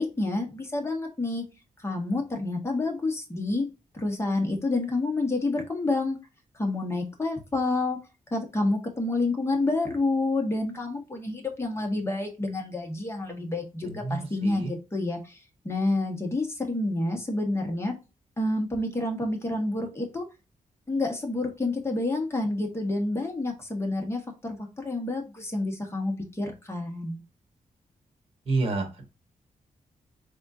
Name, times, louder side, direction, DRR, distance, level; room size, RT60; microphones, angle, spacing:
voice 1, 0.0-1.4 1.8-3.7 3.9-6.2 6.5-8.0 8.3-15.4 15.6-17.9 18.4-20.2 20.9-27.2, left 2 dB, 20° left, 2 dB, 1.4 m, -28 dB
voice 2, 28.5-29.0, right 3 dB, 45° right, 4 dB, 1.6 m, -28 dB
4.2 x 3.6 x 2.7 m, 0.27 s
wide cardioid pair, 115°, 14 cm